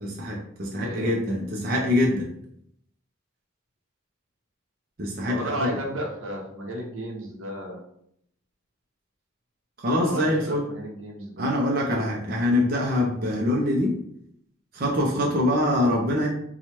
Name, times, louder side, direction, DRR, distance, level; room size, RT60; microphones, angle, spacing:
voice 1, 0.0-2.3 5.0-5.7 9.8-10.6 11.4-14.0 14.7-16.3, left 1 dB, 45° right, -2 dB, 0.5 m, -24 dB
voice 2, 0.8-1.1 5.3-7.8 9.9-11.6, right 1 dB, 85° right, 0 dB, 0.9 m, -33 dB
3.0 x 2.3 x 4.3 m, 0.71 s
head